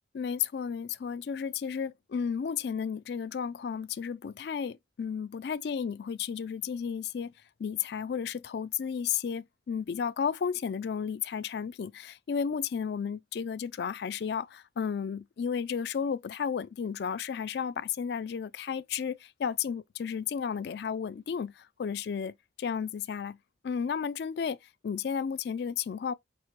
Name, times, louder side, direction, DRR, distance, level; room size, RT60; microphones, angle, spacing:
voice 1, 0.1-7.3 7.6-22.3 22.6-23.4 23.6-24.6 24.8-26.1, left 7 dB, 60° left, 0.3 m, -33 dB
6.1 x 2.8 x 2.9 m
head